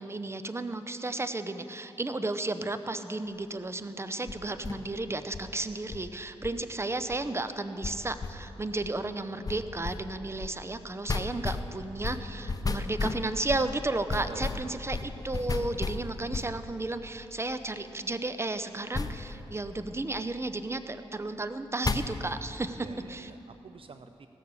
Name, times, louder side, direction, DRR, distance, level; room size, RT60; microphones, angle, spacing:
voice 1, 0.0-23.3, right 2 dB, 25° right, 10 dB, 0.7 m, -33 dB
sound 1, 4.3-5.5 5.9-6.6 7.1-7.2 7.8-8.5 8.8-9.0 9.4-17.1 18.9-20.3 21.8-22.4, left 3 dB, 35° left, 0.7 m, -35 dB
voice 2, 14.3-14.8 22.7-24.3, right 5 dB, 55° right, 9 dB, 0.5 m, -47 dB
16.5 x 6.8 x 6.7 m, 2.8 s
cardioid pair, 50°, 11 cm